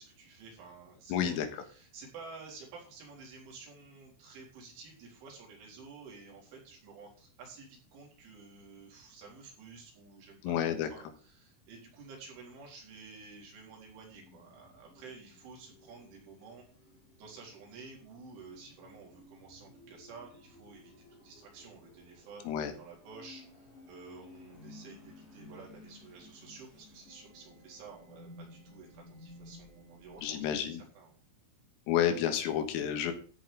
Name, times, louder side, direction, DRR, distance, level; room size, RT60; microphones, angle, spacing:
voice 1, 0.0-16.7 17.2-30.4 31.0-31.2, right 4 dB, 70° right, -1 dB, 6.2 m, -51 dB
voice 2, 1.1-1.6 10.4-10.9 22.5-22.7 30.2-30.8 31.9-33.1, left 9 dB, 90° left, 7 dB, 4.2 m, -30 dB
sound 1, 14.1-30.4, left 2 dB, 20° left, 5.7 m, -56 dB
13.5 x 9.6 x 3.6 m, 0.41 s
omnidirectional pair, 5.8 m